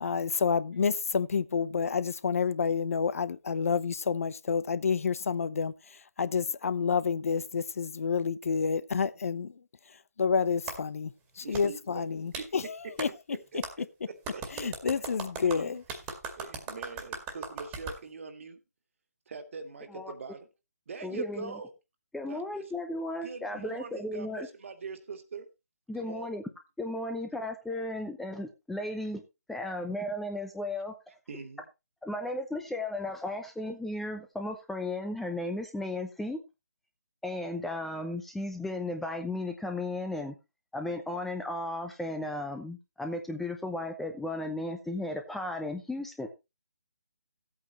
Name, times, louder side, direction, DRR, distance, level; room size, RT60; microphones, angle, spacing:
voice 1, 0.0-5.7 6.2-9.5 10.2-11.1 11.4-13.1 14.5-15.8, left 5 dB, 60° left, 0.7 m, -29 dB
Clapping, 10.7-10.8 11.5-11.7 12.3-12.5 13.0-13.1 13.6-13.7 14.2-18.0, right 5 dB, 15° right, 2.0 m, -38 dB
voice 2, 11.4-12.6 13.5-14.7 15.4-15.8 16.4-18.6 19.3-20.5 20.9-21.7 22.3-22.6 23.2-25.5 26.0-26.3 31.3-31.7, right 4 dB, 50° right, 2.1 m, -42 dB
voice 3, 21.0-21.5 22.1-24.5 25.9-26.4 26.8-29.2 29.5-30.9 32.0-36.4 37.2-40.3 40.7-46.3, left 1 dB, ahead, 0.7 m, -35 dB
15.0 x 8.7 x 3.0 m
figure-of-eight pair, 150°, 9 cm